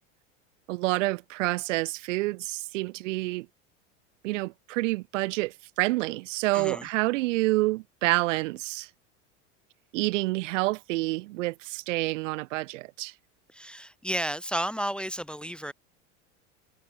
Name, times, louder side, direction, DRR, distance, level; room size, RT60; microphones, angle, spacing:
voice 1, 0.7-3.5 4.2-8.9 9.9-13.1, right 20 dB, 75° right, 0.5 m, -28 dB
voice 2, 6.5-6.9 13.5-15.7, equal, 5° left, 0.5 m, -32 dB
hypercardioid pair, 100°, 37 cm